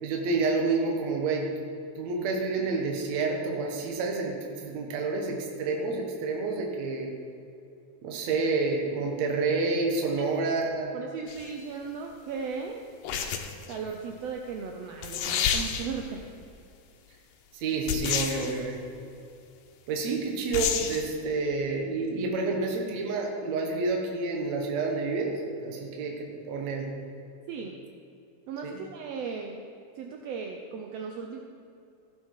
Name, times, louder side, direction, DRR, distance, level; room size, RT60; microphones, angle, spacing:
voice 1, 0.0-1.5 2.0-7.1 8.0-10.9 17.5-18.8 19.9-26.9 28.6-28.8, right 3 dB, 65° right, 1 dB, 2.3 m, -29 dB
voice 2, 10.9-12.8 13.7-16.3 27.5-27.8 28.5-29.6 30.0-31.4, right 5 dB, 80° right, 2 dB, 1.4 m, -36 dB
sound 1, 11.3-11.5 13.0-13.8 14.7-14.8 15.0-16.1 17.9-18.6 20.5-21.0, left 7 dB, 85° left, 2.4 m, -29 dB
15.5 x 7.6 x 4.7 m, 2.6 s
omnidirectional pair, 3.7 m